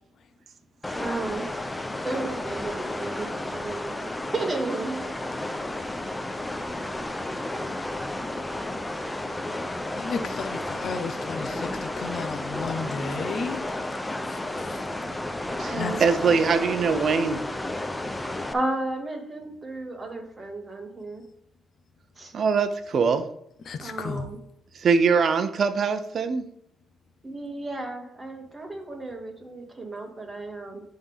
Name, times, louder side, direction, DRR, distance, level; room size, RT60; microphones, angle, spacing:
sound 1, 0.8-18.5, left 1 dB, 10° left, 0.7 m, -32 dB
voice 1, 1.0-1.5 2.0-5.1 15.7-16.3 18.5-21.2 22.2-22.3 23.8-24.4 27.2-30.8, right 2 dB, 25° right, 1 dB, 2.4 m, -33 dB
voice 2, 9.7-13.6 14.2-14.8 15.7-16.0 23.6-24.3, left 5 dB, 60° left, 8 dB, 0.8 m, -34 dB
sound 2, 12.9-15.4, left 3 dB, 80° left, 1.8 m, -46 dB
voice 3, 15.6-17.4 22.3-23.3 24.7-26.4, right 5 dB, 55° right, 9 dB, 0.8 m, -23 dB
11.0 x 3.7 x 3.6 m, 0.72 s
supercardioid pair, 70°, 0 cm